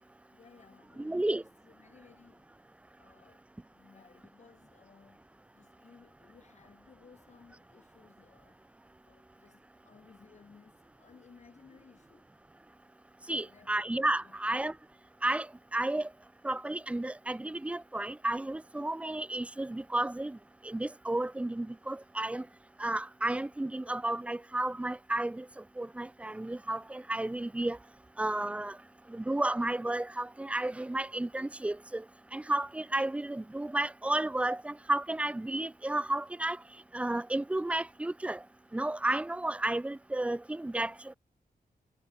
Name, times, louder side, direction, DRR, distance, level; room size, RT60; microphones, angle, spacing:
voice 1, 0.3-2.6 3.0-5.3 5.5-8.7 9.1-12.3 13.3-13.8 14.2-14.4, left 5 dB, 45° left, 4.5 m, -59 dB
voice 2, 1.0-1.4 13.3-14.7 15.2-16.1 16.4-20.4 20.6-22.5 22.8-27.8 28.2-28.8 29.1-32.0 32.3-36.6 36.9-38.4 38.7-41.1, right 1 dB, 10° right, 0.3 m, -32 dB
wide cardioid pair, 175°, 16 cm